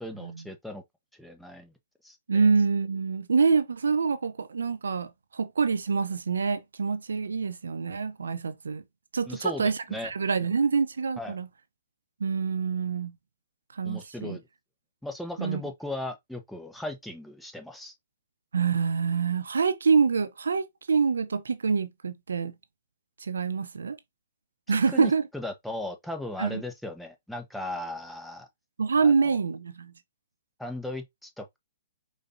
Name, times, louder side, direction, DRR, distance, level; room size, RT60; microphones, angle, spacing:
voice 1, 0.0-0.8 1.2-1.7 2.0-2.5 9.3-10.1 11.2-11.4 13.8-14.4 15.0-17.9 24.9-28.5 29.0-29.4 30.6-31.6, left 1 dB, ahead, 0.9 m, -37 dB
voice 2, 2.3-8.8 9.1-11.5 12.2-13.1 13.8-14.4 15.4-15.6 18.5-22.5 23.2-24.0 24.7-25.2 26.4-26.6 28.8-29.9, right 5 dB, 90° right, 0.6 m, -26 dB
5.1 x 4.0 x 2.6 m
hypercardioid pair, 140°, 0 cm